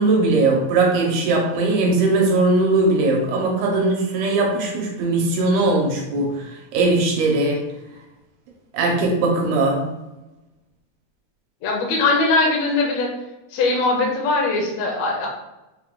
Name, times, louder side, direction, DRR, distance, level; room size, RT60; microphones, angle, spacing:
voice 1, 0.0-7.6 8.7-9.8, right 2 dB, 85° right, 0 dB, 2.4 m, -19 dB
voice 2, 11.6-13.1 13.5-15.3, left 3 dB, 75° left, -1 dB, 1.8 m, -20 dB
5.6 x 2.3 x 3.6 m, 0.98 s
omnidirectional pair, 3.5 m